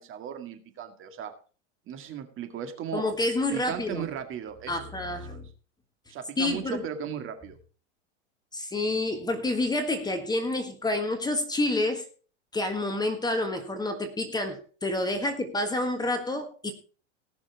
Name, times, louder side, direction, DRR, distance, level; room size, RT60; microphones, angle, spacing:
voice 1, 0.0-1.3 1.9-3.0 3.5-4.9 5.3-5.4 6.1-7.6 15.2-15.3, right 8 dB, 35° right, 7 dB, 2.1 m, -36 dB
voice 2, 2.9-4.1 4.7-5.5 6.4-6.8 8.5-12.1 12.5-16.7, left 2 dB, 10° left, 6 dB, 1.6 m, -28 dB
18.5 x 6.2 x 4.7 m, 0.38 s
hypercardioid pair, 125°, 38 cm